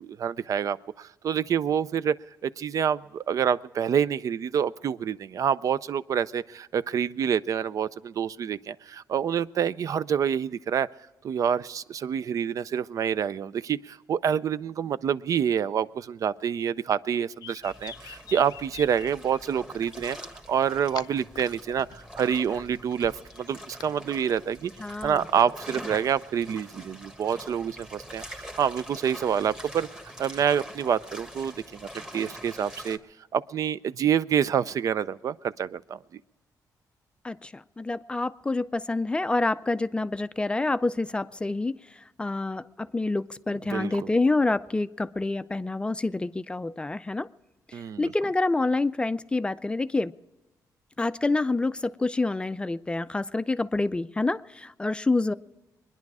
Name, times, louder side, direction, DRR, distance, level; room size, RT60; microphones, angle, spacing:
voice 1, 0.0-2.1 2.4-10.9 11.2-20.2 20.5-24.7 25.0-29.9 30.2-33.0 33.3-36.2 43.7-43.9 47.7-48.1, right 8 dB, 55° right, 17 dB, 0.5 m, -27 dB
sound 1, 17.1-19.4 20.3-21.4 21.8-23.9, left 11 dB, 80° left, 0.4 m, -45 dB
sound 2, 17.6-33.0, equal, 10° right, 1.4 m, -44 dB
voice 2, 24.8-25.3 37.2-41.7 42.2-47.3 47.7-50.1 51.0-55.3, left 2 dB, 15° left, 13 dB, 0.4 m, -27 dB
22.5 x 10.5 x 4.8 m, 1.1 s
cardioid pair, 120°, 7 cm